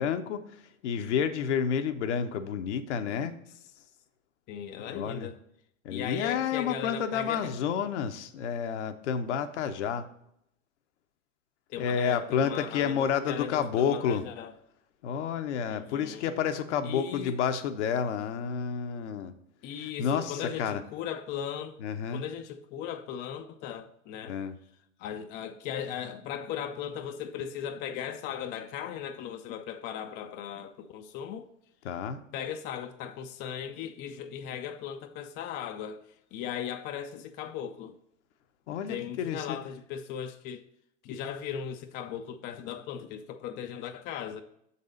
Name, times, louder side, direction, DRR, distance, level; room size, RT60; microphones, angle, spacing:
voice 1, 0.0-3.3 4.9-5.3 5.8-10.0 11.8-14.2 15.0-19.3 19.8-20.8 21.8-22.2 24.3-24.6 31.8-32.2 38.7-39.6, left 7 dB, 60° left, 0.8 m, -30 dB
voice 2, 4.5-5.4 5.9-7.6 11.7-14.5 15.7-16.4 16.8-17.4 19.6-21.8 22.1-24.4 25.0-31.5 32.3-38.0 38.7-40.7 41.0-44.4, left 9 dB, 30° left, 0.4 m, -37 dB
6.7 x 4.1 x 5.1 m
figure-of-eight pair, 85°, 39 cm